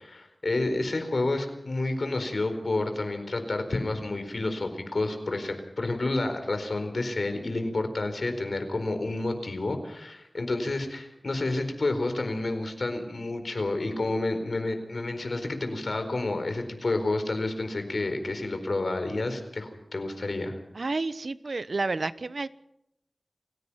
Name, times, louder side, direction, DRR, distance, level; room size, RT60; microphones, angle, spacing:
voice 1, 0.0-20.6, left 2 dB, 80° left, 7 dB, 4.5 m, -30 dB
voice 2, 20.7-22.5, right 3 dB, 80° right, 15 dB, 1.0 m, -30 dB
30.0 x 16.5 x 5.8 m, 0.81 s
wide cardioid pair, 55°, 0 cm